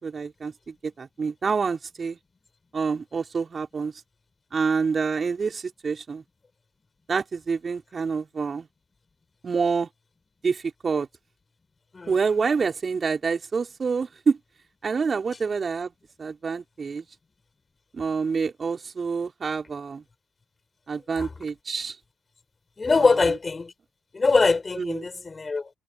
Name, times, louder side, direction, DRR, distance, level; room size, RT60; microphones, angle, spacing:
voice 1, 0.0-2.2 2.7-3.9 4.5-6.2 7.1-8.7 9.4-9.9 10.4-11.1 12.1-14.4 14.8-15.9 16.2-17.1 17.9-20.0 20.9-22.0 23.0-23.1 24.8-25.1, right 5 dB, 40° right, 5.4 m, -27 dB
voice 2, 22.8-23.7 24.1-25.7, left 4 dB, 30° left, 4.8 m, -22 dB
supercardioid pair, 60°, 0 cm